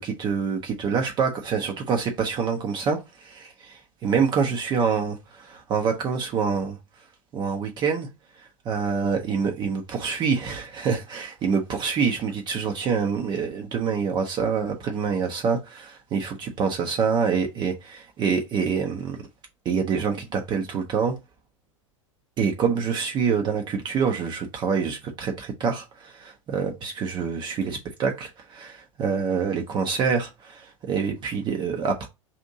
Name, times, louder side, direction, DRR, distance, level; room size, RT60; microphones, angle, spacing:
voice 1, 0.0-6.8 7.3-8.1 8.7-19.2 19.7-21.2 22.4-32.1, right 6 dB, 25° right, 0.5 m, -26 dB
2.7 x 2.5 x 3.6 m
figure-of-eight pair, 90°, 17 cm